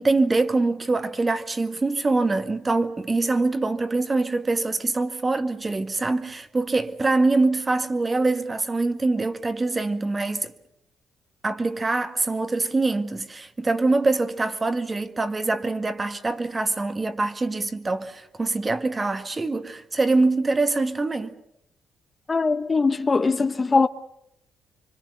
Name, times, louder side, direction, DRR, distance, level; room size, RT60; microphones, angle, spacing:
voice 1, 0.0-10.5 11.4-21.3, right 3 dB, 25° right, 1.8 m, -24 dB
voice 2, 22.3-23.9, left 4 dB, 30° left, 0.9 m, -21 dB
26.5 x 24.5 x 6.7 m
cardioid pair, 90°, 0 cm